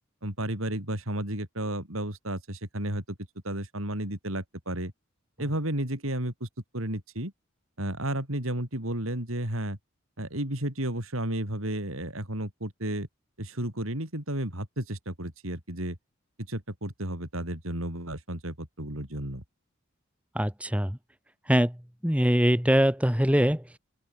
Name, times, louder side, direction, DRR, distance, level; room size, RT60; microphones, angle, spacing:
voice 1, 0.2-3.0 3.4-4.9 5.4-6.5 6.7-7.3 7.8-9.8 10.2-13.1 13.4-16.0 16.5-19.4, right 1 dB, 80° right, 7.2 m, -32 dB
voice 2, 20.3-21.0 21.5-23.8, equal, 5° right, 2.1 m, -23 dB
head